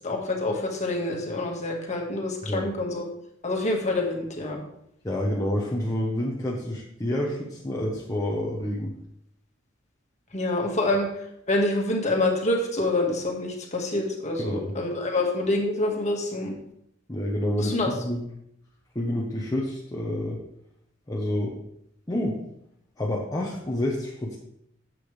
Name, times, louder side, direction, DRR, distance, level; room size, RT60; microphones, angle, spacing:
voice 1, 0.0-3.0 3.4-4.6 10.3-11.1 11.5-16.5 17.6-17.9, left 2 dB, 35° left, 0 dB, 1.7 m, -26 dB
voice 2, 5.0-8.9 14.4-14.7 17.1-18.2 18.9-20.4 21.1-21.6 22.1-22.4 23.0-24.4, left 1 dB, 20° left, -4 dB, 1.0 m, -28 dB
10.0 x 7.7 x 3.3 m, 0.75 s
head